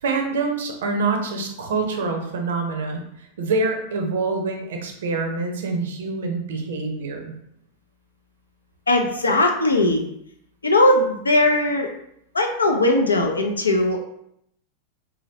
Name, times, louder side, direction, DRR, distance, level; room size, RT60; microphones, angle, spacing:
voice 1, 0.0-7.3, right 3 dB, 60° right, 3 dB, 0.6 m, -26 dB
voice 2, 8.9-10.0 10.6-11.9 12.3-14.0, left 2 dB, 75° left, 4 dB, 0.4 m, -19 dB
2.9 x 2.8 x 2.8 m, 0.74 s
figure-of-eight pair, 90°, 0 cm